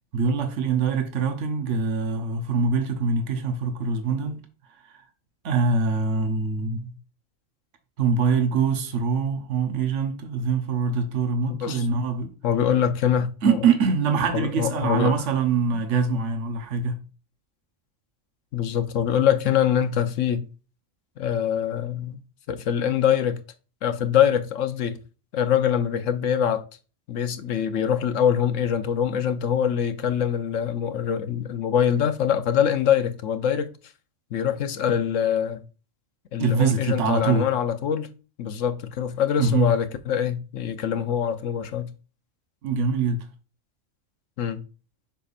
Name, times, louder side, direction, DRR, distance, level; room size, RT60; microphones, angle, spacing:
voice 1, 0.1-4.4 5.4-6.9 8.0-12.3 13.4-17.0 36.4-37.5 39.4-39.7 42.6-43.2, right 5 dB, 65° right, 1.3 m, -24 dB
voice 2, 11.5-11.9 12.4-13.6 14.3-15.1 18.5-20.4 21.2-22.2 22.5-23.4 23.8-25.0 25.3-26.6 27.1-33.7 34.3-35.6 36.3-38.1 38.4-41.9 44.4-44.6, left 9 dB, 75° left, 1.1 m, -24 dB
7.2 x 5.6 x 2.5 m
omnidirectional pair, 1.3 m